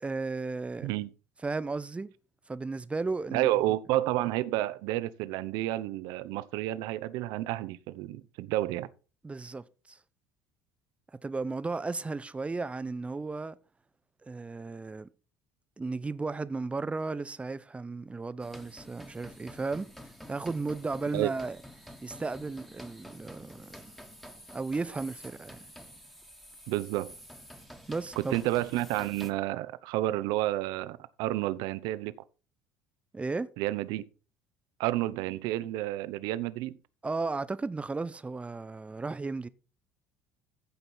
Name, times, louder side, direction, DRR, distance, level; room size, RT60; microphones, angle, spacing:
voice 1, 0.0-0.9 1.4-2.1 2.5-3.7 9.2-10.0 11.2-13.6 14.2-15.1 15.8-21.6 22.0-23.8 24.5-25.6 27.9-28.3 33.1-33.5 37.0-39.5, right 3 dB, 15° right, 0.6 m, -35 dB
voice 2, 3.3-8.9 21.1-21.3 26.7-27.1 28.2-32.1 33.6-34.0 34.8-36.7, right 15 dB, 55° right, 0.6 m, -30 dB
sound 1, 18.4-29.3, equal, 5° left, 1.5 m, -49 dB
15.0 x 5.3 x 4.3 m
figure-of-eight pair, 60°, 8 cm